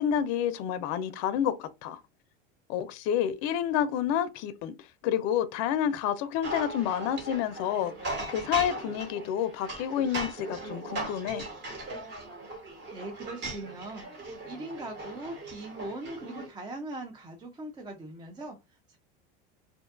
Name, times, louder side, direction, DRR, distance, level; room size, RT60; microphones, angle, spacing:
voice 1, 0.0-2.0 2.7-11.4, left 9 dB, 55° left, 0.4 m, -29 dB
sound 1, 6.4-16.5, right 2 dB, 35° right, 1.1 m, -38 dB
voice 2, 12.9-14.1 14.4-19.0, right 2 dB, 15° right, 0.4 m, -40 dB
2.6 x 2.2 x 2.4 m
supercardioid pair, 125°, 29 cm